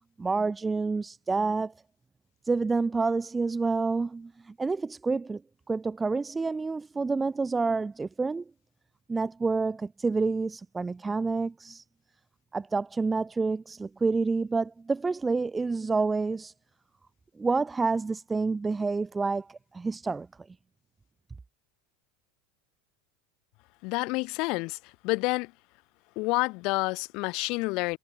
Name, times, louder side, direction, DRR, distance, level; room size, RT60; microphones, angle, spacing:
voice 1, 0.2-1.7 2.5-5.4 5.7-8.4 9.1-11.8 12.5-16.5 17.4-20.3, right 4 dB, 15° right, 2.0 m, -28 dB
voice 2, 23.8-25.5 26.1-28.0, left 26 dB, 60° left, 1.5 m, -29 dB
hypercardioid pair, 95°, 0 cm